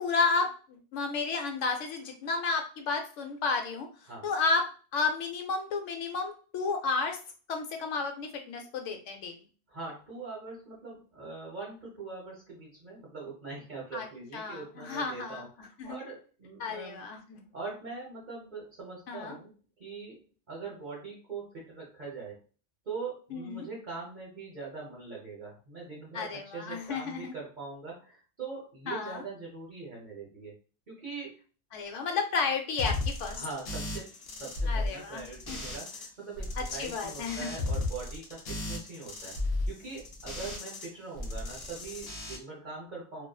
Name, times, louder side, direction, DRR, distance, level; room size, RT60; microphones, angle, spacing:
voice 1, 0.0-3.9 4.2-4.6 4.9-7.2 7.5-9.4 13.9-14.1 14.3-15.4 15.8-16.0 16.6-17.5 19.1-19.4 23.3-23.7 26.1-27.3 28.9-29.2 31.7-33.4 34.7-35.6 36.6-37.6 40.4-40.7, left 4 dB, 85° left, 4 dB, 0.9 m, -32 dB
voice 2, 9.7-15.5 15.8-17.0 17.5-19.5 19.8-20.2 20.5-22.4 22.9-30.5 30.9-31.4 33.3-34.1 34.4-43.3, right 4 dB, 45° right, -4 dB, 0.8 m, -42 dB
sound 1, 32.8-36.1 36.4-40.9 41.2-42.4, left 2 dB, 60° left, 0.8 m, -35 dB
2.5 x 2.4 x 2.2 m, 0.39 s
omnidirectional pair, 1.2 m